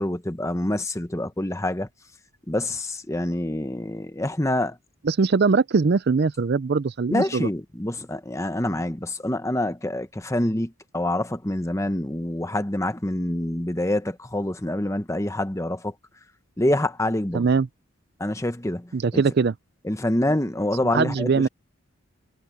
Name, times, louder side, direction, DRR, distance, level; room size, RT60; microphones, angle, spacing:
voice 1, 0.0-1.9 2.5-4.8 7.1-15.9 16.6-17.5 18.2-19.2 19.8-21.4, left 1 dB, 15° left, 0.9 m, -26 dB
voice 2, 5.0-7.5 17.3-17.7 18.9-19.5 20.9-21.5, right 4 dB, 45° right, 0.4 m, -21 dB
head